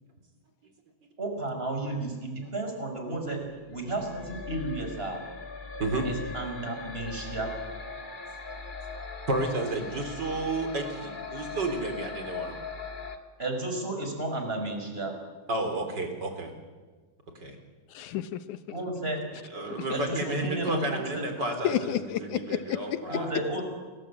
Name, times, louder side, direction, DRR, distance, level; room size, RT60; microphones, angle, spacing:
voice 1, 1.2-5.2 6.0-7.5 13.4-15.1 18.7-19.2 19.9-21.3 23.1-23.6, right 2 dB, 15° right, 4 dB, 5.4 m, -33 dB
sound 1, 3.7-13.2, left 4 dB, 20° left, 1.4 m, -40 dB
voice 2, 9.3-12.6 15.5-16.5 17.4-17.6 19.5-21.8 22.3-23.3, right 2 dB, 35° right, 5 dB, 4.3 m, -31 dB
voice 3, 17.9-18.8 19.8-19.9 21.6-23.0, left 11 dB, 75° left, 12 dB, 2.4 m, -31 dB
29.0 x 21.5 x 8.7 m, 1.4 s
omnidirectional pair, 3.6 m